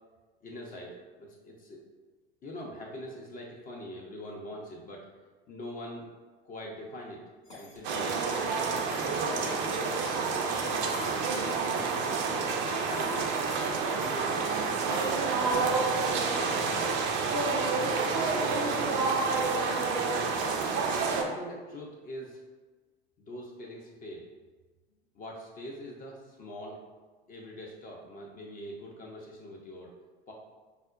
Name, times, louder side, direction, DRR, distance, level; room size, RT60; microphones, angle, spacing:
voice 1, 0.4-1.8 2.4-5.1 5.5-6.1 6.4-7.2 7.6-8.3 8.9-12.2 12.8-17.0 17.8-20.3 21.1-22.4 23.2-24.2 25.2-26.8 27.3-29.9 30.3-30.4, equal, 25° left, -2 dB, 0.5 m, -43 dB
sound 1, 7.5-16.9, left 2 dB, 85° left, 0.9 m, -47 dB
sound 2, 7.8-21.2, right 4 dB, 35° right, 0.4 m, -29 dB
4.8 x 2.1 x 2.4 m, 1.3 s
figure-of-eight pair, 75°, 33 cm